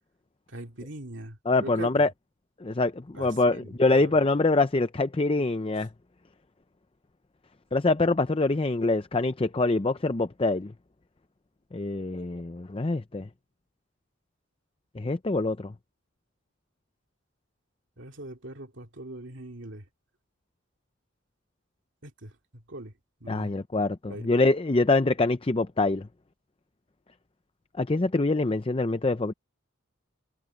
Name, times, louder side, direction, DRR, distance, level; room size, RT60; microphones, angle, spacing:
voice 1, 0.5-2.1 3.1-4.1 18.0-19.8 22.0-22.9 23.2-23.5 24.1-24.2, right 1 dB, 60° right, 2.4 m, -41 dB
voice 2, 1.5-2.1 2.6-5.9 7.7-10.7 11.7-13.3 15.0-15.7 23.3-26.1 27.8-29.3, left 2 dB, 25° left, 0.5 m, -25 dB
head